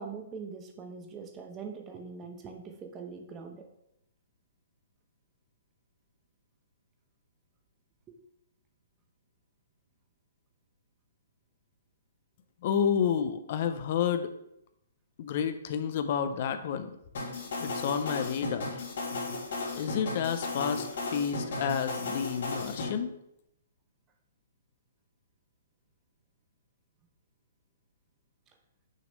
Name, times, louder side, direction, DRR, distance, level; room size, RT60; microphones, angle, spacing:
voice 1, 0.0-3.7 8.1-8.2, right 5 dB, 15° right, 4 dB, 0.7 m, -42 dB
voice 2, 12.6-14.3 15.2-16.9 17.6-18.7 19.8-23.1, left 7 dB, 45° left, 10 dB, 0.5 m, -30 dB
sound 1, 17.1-22.9, left 3 dB, 60° left, 2.3 m, -35 dB
6.4 x 3.1 x 5.2 m, 0.79 s
hypercardioid pair, 160°, 0 cm